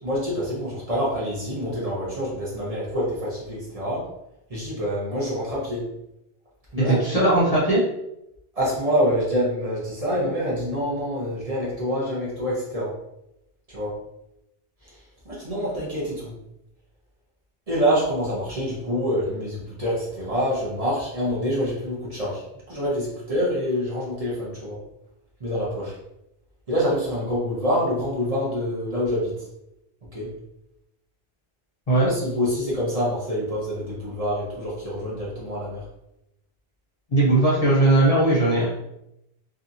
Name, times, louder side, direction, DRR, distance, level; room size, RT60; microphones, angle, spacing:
voice 1, 0.0-4.1 4.5-5.9 6.7-7.6 8.5-13.0 13.7-13.9 15.3-16.3 17.7-22.4 22.7-24.8 25.4-25.9 26.7-29.4 30.1-30.3 32.0-35.8, equal, 40° right, -6 dB, 0.9 m, -26 dB
voice 2, 6.8-7.8 31.9-32.1 37.1-38.7, right 2 dB, 40° left, -6 dB, 0.7 m, -19 dB
2.7 x 2.4 x 2.6 m, 0.84 s
omnidirectional pair, 1.0 m